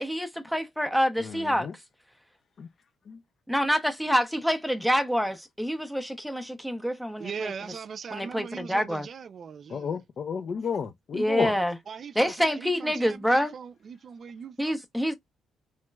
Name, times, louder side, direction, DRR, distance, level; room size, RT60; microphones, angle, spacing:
voice 1, 0.0-1.7 3.5-7.5 8.1-9.1 11.1-11.8 12.1-13.5 14.6-15.1, equal, ahead, 0.5 m, -27 dB
voice 2, 1.2-1.7 2.6-2.7 3.1-3.2 9.7-11.6, left 6 dB, 50° left, 0.4 m, -32 dB
voice 3, 7.2-10.0 11.9-14.8, right 6 dB, 50° right, 0.4 m, -40 dB
3.1 x 2.8 x 2.2 m
cardioid pair, 90°, 0 cm